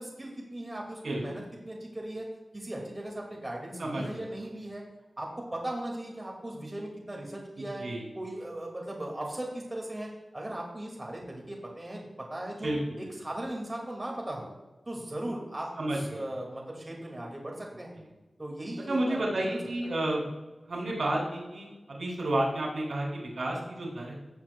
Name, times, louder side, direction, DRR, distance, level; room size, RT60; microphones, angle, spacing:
voice 1, 0.0-2.3 2.5-4.8 5.2-7.9 8.2-14.5 14.9-18.0 18.4-19.7, right 1 dB, 25° right, -1 dB, 2.0 m, -38 dB
voice 2, 3.8-4.3 7.6-8.1 12.6-12.8 15.8-16.2 18.9-20.3 20.7-24.2, right 1 dB, 85° right, -3 dB, 2.8 m, -31 dB
16.0 x 7.3 x 2.3 m, 1.1 s
wide cardioid pair, 105°, 0 cm